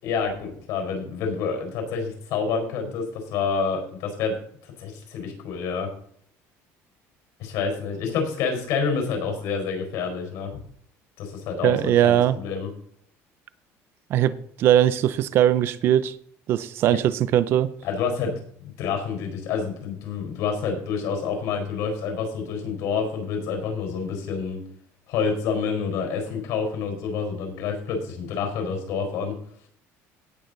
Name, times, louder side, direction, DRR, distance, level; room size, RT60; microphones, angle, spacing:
voice 1, 0.0-4.4 4.8-5.9 7.4-10.6 11.2-12.7 16.9-17.0 17.8-18.3 18.6-24.6 25.1-29.4, left 5 dB, 65° left, 4.5 m, -28 dB
voice 2, 11.6-12.4 14.1-16.1 16.5-17.7, right 11 dB, 40° right, 0.6 m, -20 dB
17.5 x 6.6 x 3.9 m
cardioid pair, 180°, 6 cm